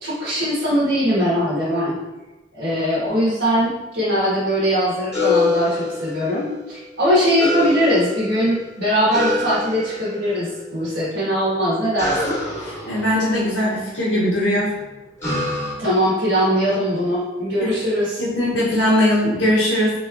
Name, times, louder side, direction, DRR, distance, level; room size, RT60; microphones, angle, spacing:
voice 1, 0.0-2.0 2.5-12.4 15.8-18.2, equal, 65° right, -11 dB, 1.3 m, -21 dB
sound 1, 5.1-6.6 7.4-8.6 9.1-10.3 12.0-14.1 15.2-15.7, left 2 dB, 15° left, 1.1 m, -25 dB
voice 2, 12.9-14.7 17.6-17.7 18.2-19.9, left 1 dB, 75° left, -6 dB, 0.8 m, -19 dB
3.8 x 3.2 x 2.5 m, 1.1 s
head